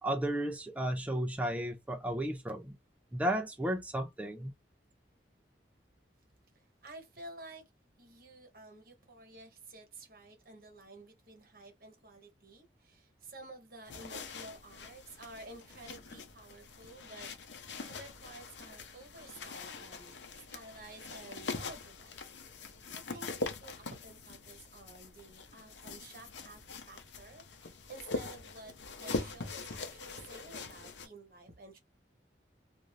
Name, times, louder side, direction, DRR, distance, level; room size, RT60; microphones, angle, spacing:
voice 1, 0.0-2.8 3.1-4.5, right 1 dB, 10° right, 0.4 m, -33 dB
voice 2, 6.5-7.6 8.0-31.8, right 2 dB, 50° right, 1.1 m, -52 dB
sound 1, 13.9-31.1, left 3 dB, 80° left, 0.7 m, -43 dB
2.6 x 2.5 x 3.0 m
head